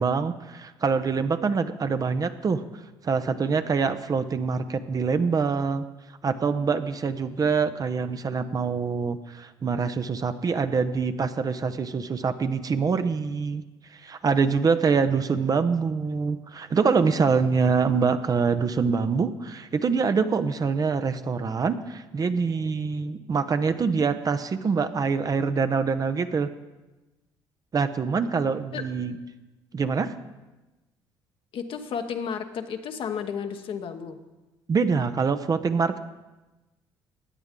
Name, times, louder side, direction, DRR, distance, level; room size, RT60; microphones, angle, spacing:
voice 1, 0.0-2.6 3.0-5.8 6.2-13.6 13.9-26.5 27.7-29.2 29.7-30.1 34.7-36.0, right 5 dB, 35° right, 10 dB, 0.7 m, -25 dB
voice 2, 31.5-34.2, left 7 dB, 60° left, 6 dB, 1.1 m, -32 dB
16.5 x 9.3 x 3.7 m, 1.1 s
supercardioid pair, 65°, 10 cm